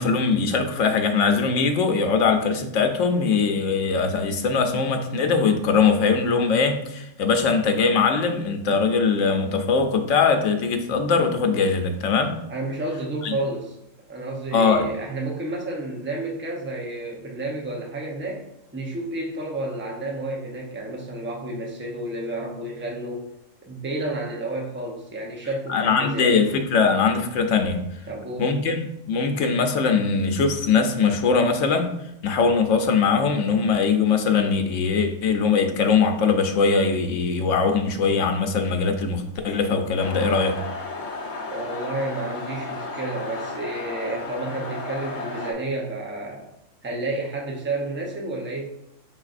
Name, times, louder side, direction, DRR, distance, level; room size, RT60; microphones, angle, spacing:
voice 1, 0.0-12.4 13.2-13.3 14.5-14.9 25.7-27.8 28.4-31.9 32.2-40.6, left 5 dB, 80° left, 5 dB, 0.9 m, -21 dB
voice 2, 12.5-13.8 14.1-18.5 18.7-23.3 23.7-26.5 28.1-28.5 41.5-46.5 46.8-48.7, right 2 dB, 15° right, -1 dB, 0.4 m, -31 dB
sound 1, 40.0-45.5, left 3 dB, 50° left, 0.7 m, -33 dB
4.9 x 3.9 x 2.4 m, 0.81 s
omnidirectional pair, 1.3 m